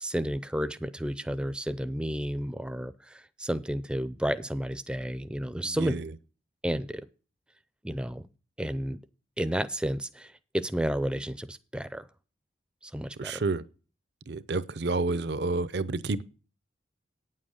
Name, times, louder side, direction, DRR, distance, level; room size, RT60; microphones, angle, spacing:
voice 1, 0.0-5.9 6.6-7.0 7.8-8.3 8.6-9.0 9.4-12.1 12.8-13.4, equal, 5° right, 0.4 m, -31 dB
voice 2, 5.6-6.1 13.2-13.6 14.3-16.2, right 3 dB, 65° right, 0.6 m, -30 dB
9.3 x 7.6 x 6.4 m
head